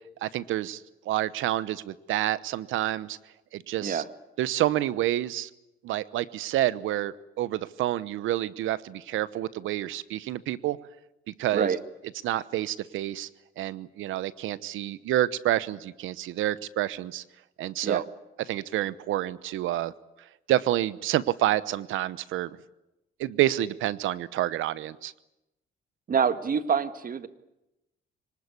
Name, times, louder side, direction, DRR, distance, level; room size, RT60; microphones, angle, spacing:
voice 1, 0.2-0.8 1.1-3.2 3.5-4.0 4.4-5.5 5.8-10.8 11.4-11.7 12.2-13.3 13.6-17.2 17.6-18.0 18.5-19.9 20.5-22.5 23.2-25.1, right 14 dB, 85° right, 18 dB, 0.9 m, -28 dB
voice 2, 26.1-27.3, right 7 dB, 45° right, 12 dB, 1.6 m, -26 dB
24.5 x 19.5 x 9.8 m, 0.92 s
cardioid pair, 90°, 20 cm